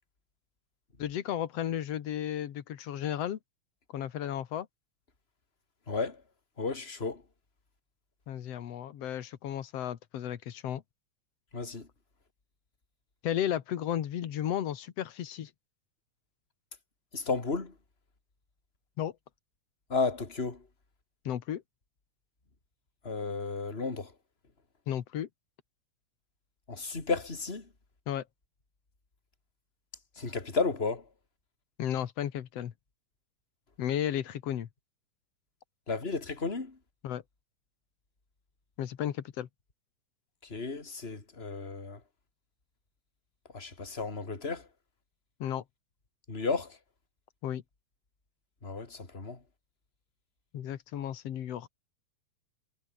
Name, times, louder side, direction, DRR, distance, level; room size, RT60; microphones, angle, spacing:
voice 1, 1.0-3.4 3.9-4.7 8.3-10.8 13.2-15.5 19.0-19.1 21.3-21.6 24.9-25.3 28.1-28.2 31.8-32.7 33.8-34.7 37.0-37.2 38.8-39.5 45.4-45.6 47.4-47.6 50.5-51.7, left 10 dB, 60° left, 2.3 m, -34 dB
voice 2, 5.9-6.2 6.6-7.2 11.5-11.9 17.1-17.7 19.9-20.6 23.0-24.1 26.7-27.7 30.2-31.0 35.9-36.8 40.5-42.0 43.5-44.6 46.3-46.8 48.6-49.4, left 4 dB, 20° left, 3.3 m, -33 dB
omnidirectional pair, 3.6 m